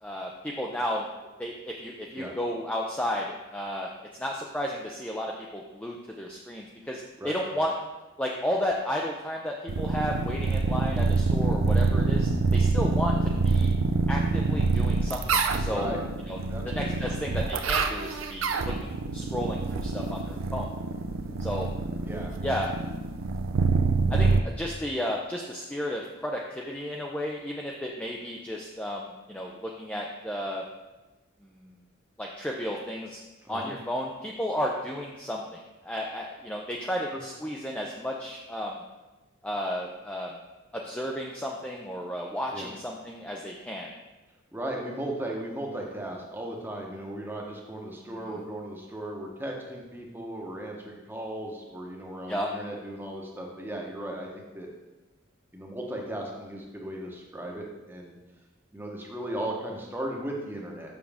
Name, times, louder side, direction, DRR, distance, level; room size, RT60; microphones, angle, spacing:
voice 1, 0.0-1.1 1.4-3.3 3.5-3.9 4.2-7.7 8.2-13.7 14.1-15.9 16.2-16.4 16.7-20.7 21.4-21.7 22.4-22.7 24.1-30.6 31.4-31.7 32.2-33.2 33.5-38.8 39.4-40.4 40.7-43.9 48.1-48.4 52.3-52.5, equal, 5° left, -1 dB, 0.4 m, -33 dB
voice 2, 7.2-7.6 15.6-16.0 16.5-17.1 22.1-22.3 33.4-33.7 37.1-37.2 42.5-42.7 44.5-54.7 55.5-58.2 58.7-60.9, right 1 dB, 10° right, -1 dB, 0.9 m, -36 dB
sound 1, 9.7-24.4, right 4 dB, 65° right, 0.5 m, -26 dB
7.1 x 6.2 x 3.4 m, 1.1 s
head